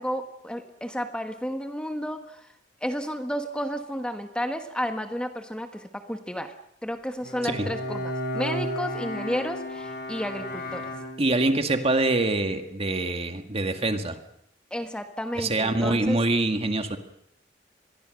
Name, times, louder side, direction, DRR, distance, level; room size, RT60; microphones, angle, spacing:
voice 1, 0.0-2.5 2.8-6.5 6.8-10.9 14.7-16.2, equal, 5° left, 6 dB, 1.3 m, -32 dB
Bowed string instrument, 7.2-11.6, equal, 55° left, 6.2 m, -33 dB
voice 2, 11.2-14.2 15.4-17.0, right 2 dB, 35° right, 7 dB, 2.0 m, -25 dB
25.5 x 21.5 x 6.6 m, 0.74 s
head